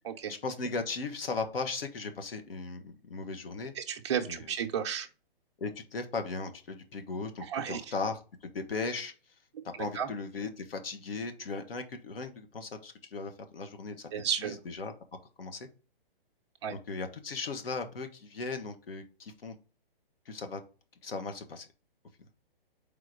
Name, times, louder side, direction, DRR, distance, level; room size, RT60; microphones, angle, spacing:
voice 1, 0.3-3.7 4.3-4.4 5.6-9.1 9.8-14.1 14.4-14.9 15.4-15.7 16.7-19.5 20.2-20.6 21.0-21.7, left 4 dB, 75° left, 7 dB, 1.4 m, -37 dB
voice 2, 3.7-5.1 7.4-7.8 9.9-10.1 14.1-14.6 16.6-16.7, right 8 dB, 30° right, 2 dB, 0.7 m, -32 dB
4.8 x 3.8 x 5.1 m, 0.35 s
hypercardioid pair, 170°, 29 cm